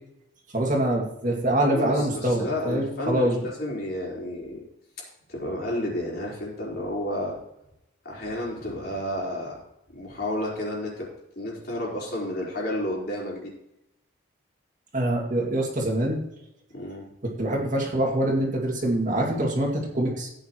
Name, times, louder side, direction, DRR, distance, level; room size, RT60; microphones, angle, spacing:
voice 1, 0.5-3.4 14.9-16.2 17.2-20.3, right 1 dB, 40° right, -1 dB, 2.2 m, -25 dB
voice 2, 1.7-4.6 5.0-7.4 8.0-9.6 9.9-11.1 11.4-13.5 16.7-17.1, left 1 dB, 50° left, -4 dB, 4.1 m, -31 dB
15.0 x 9.1 x 3.1 m, 0.83 s
head